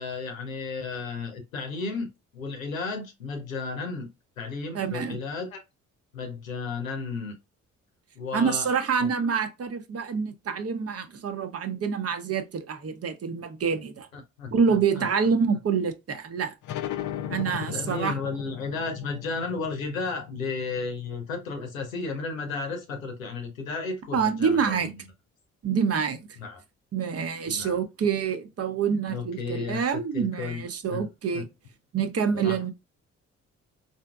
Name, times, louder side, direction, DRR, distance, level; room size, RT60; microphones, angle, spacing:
voice 1, 0.0-4.1 4.4-5.6 6.1-7.3 8.2-8.7 9.0-9.1 14.1-15.1 17.7-24.9 26.4-26.6 27.5-27.8 29.1-29.8 30.1-30.6 30.9-31.0 31.3-31.4 32.3-32.7, left 4 dB, 85° left, 0.8 m, -33 dB
voice 2, 4.7-5.2 8.3-14.1 14.5-16.5 17.3-18.1 24.1-24.9 25.6-26.3 26.9-31.5 31.9-32.7, right 6 dB, 35° right, 0.8 m, -27 dB
sound 1, 16.6-21.9, left 11 dB, 50° left, 0.6 m, -37 dB
4.2 x 2.7 x 2.3 m
figure-of-eight pair, 40°, 39 cm